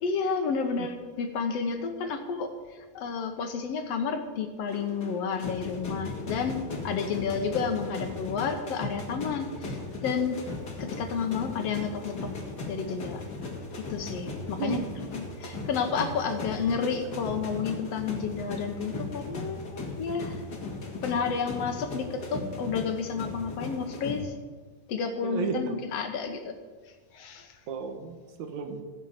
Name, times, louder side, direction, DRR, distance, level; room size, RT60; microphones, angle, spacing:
voice 1, 0.0-10.4 10.8-12.3 12.6-13.2 13.8-14.8 15.1-20.4 21.0-24.3 24.9-26.6 27.1-27.6, left 5 dB, 65° left, 6 dB, 2.0 m, -31 dB
sound 1, 4.7-24.2, left 3 dB, 40° left, 2.2 m, -37 dB
voice 2, 14.6-14.9 25.2-25.9 27.7-28.8, right 5 dB, 75° right, 5 dB, 2.6 m, -33 dB
15.0 x 7.1 x 7.9 m, 1.4 s
omnidirectional pair, 3.3 m